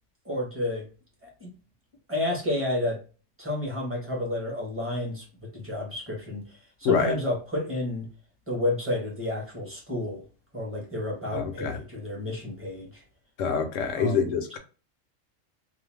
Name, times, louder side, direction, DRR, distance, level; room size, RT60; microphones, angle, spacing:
voice 1, 0.2-0.9 1.2-1.5 2.1-3.0 3.4-6.4 6.8-8.1 8.5-10.2 10.5-13.0 13.9-14.2, left 1 dB, 10° right, 0.8 m, -30 dB
voice 2, 6.8-7.2 11.3-11.8 13.4-14.6, left 6 dB, 75° left, 0.9 m, -26 dB
2.5 x 2.1 x 3.1 m
omnidirectional pair, 1.3 m